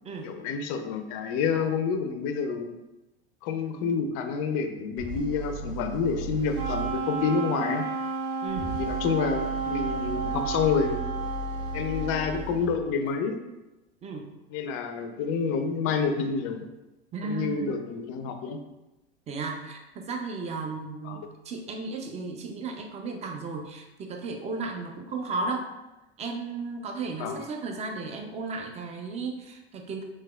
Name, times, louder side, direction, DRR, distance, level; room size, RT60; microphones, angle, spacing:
voice 1, 0.2-2.7 3.4-7.9 8.7-11.0 11.7-13.4 14.5-16.6 17.2-18.6 21.0-21.2 27.2-27.4, left 5 dB, 45° left, 7 dB, 0.4 m, -28 dB
sound 1, 5.0-7.0 8.4-12.8, right 2 dB, 75° right, 1.3 m, -36 dB
Wind instrument woodwind instrument, 6.5-12.6, right 4 dB, 55° right, 0.9 m, -32 dB
voice 2, 8.4-8.7 14.0-14.3 17.1-17.8 19.3-25.7 26.2-30.0, right 3 dB, 20° right, 3 dB, 0.4 m, -34 dB
3.3 x 3.0 x 2.2 m, 1.0 s
hypercardioid pair, 85°, 32 cm